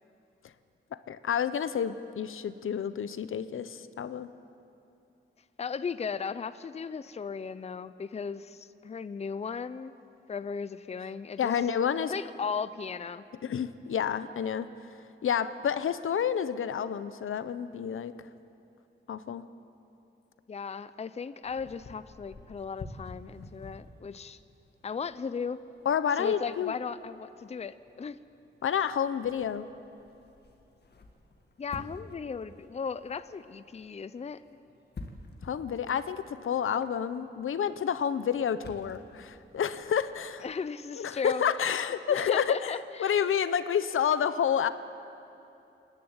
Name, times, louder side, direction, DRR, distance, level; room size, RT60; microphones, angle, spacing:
voice 1, 0.9-4.3 11.4-12.1 13.4-14.7 15.2-18.1 19.1-19.4 25.8-26.7 28.6-29.6 35.4-40.4 41.0-42.7 43.0-44.7, left 8 dB, 85° left, 13 dB, 0.8 m, -29 dB
voice 2, 5.6-9.9 10.3-11.6 12.1-13.2 20.5-24.4 24.8-25.6 26.2-28.2 31.6-34.4 40.4-41.4 42.1-43.2, left 6 dB, 30° left, 14 dB, 0.5 m, -36 dB
sound 1, 21.4-40.7, left 2 dB, 55° left, 1.8 m, -51 dB
28.5 x 11.0 x 8.9 m, 2.8 s
wide cardioid pair, 120°, 21 cm